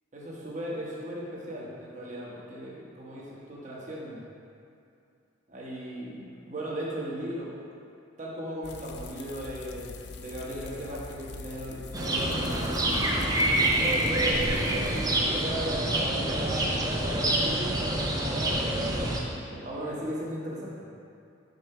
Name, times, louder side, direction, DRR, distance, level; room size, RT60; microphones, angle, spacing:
voice 1, 0.1-4.2 5.5-7.6 8.2-12.6 13.4-18.7 19.5-20.9, equal, 35° right, -5 dB, 1.1 m, -38 dB
sound 1, 8.6-15.2, left 3 dB, 55° left, 0.4 m, -42 dB
sound 2, 11.9-19.2, right 1 dB, 20° right, 0.5 m, -26 dB
5.4 x 4.3 x 5.5 m, 2.5 s
head